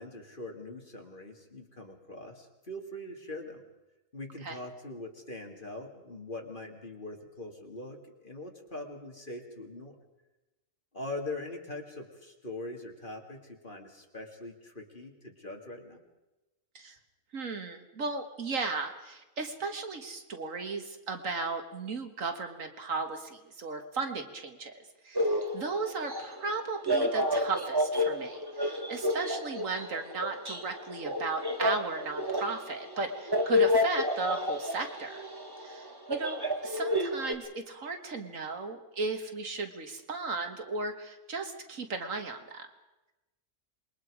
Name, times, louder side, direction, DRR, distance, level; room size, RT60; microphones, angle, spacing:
voice 1, 0.0-3.6 4.1-10.0 10.9-16.0, left 2 dB, 35° left, 2 dB, 2.6 m, -42 dB
voice 2, 17.3-24.7 25.0-35.2 35.6-42.7, right 3 dB, 65° right, 6 dB, 1.9 m, -35 dB
sound 1, 25.2-37.3, left 1 dB, 15° right, 1.7 m, -30 dB
27.0 x 22.0 x 4.9 m, 1.0 s
omnidirectional pair, 1.5 m